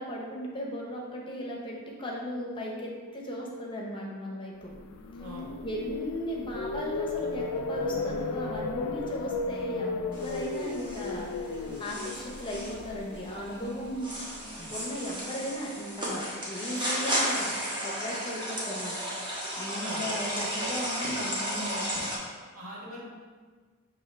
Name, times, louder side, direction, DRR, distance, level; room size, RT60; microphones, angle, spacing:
voice 1, 0.0-4.7 5.6-11.5 11.8-14.1 14.7-19.0 19.6-22.1, equal, 25° left, -2 dB, 0.7 m, -36 dB
sound 1, 4.8-14.9, left 3 dB, 80° left, 0.4 m, -35 dB
voice 2, 5.2-5.5 11.6-11.8 14.5-14.7 19.8-20.1 22.5-23.0, right 1 dB, 90° right, -6 dB, 1.4 m, -42 dB
sound 2, 10.1-22.2, equal, 20° right, 1.0 m, -34 dB
6.2 x 2.6 x 3.2 m, 1.5 s
head